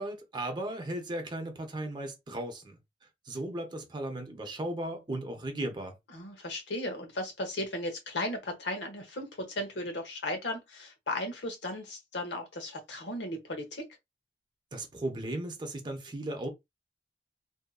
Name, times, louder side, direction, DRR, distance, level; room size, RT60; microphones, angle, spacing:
voice 1, 0.0-2.8 3.3-5.9 14.7-16.5, right 1 dB, 25° right, 0.7 m, -36 dB
voice 2, 6.1-13.8, left 1 dB, 80° left, 0.9 m, -36 dB
2.7 x 2.6 x 2.3 m
head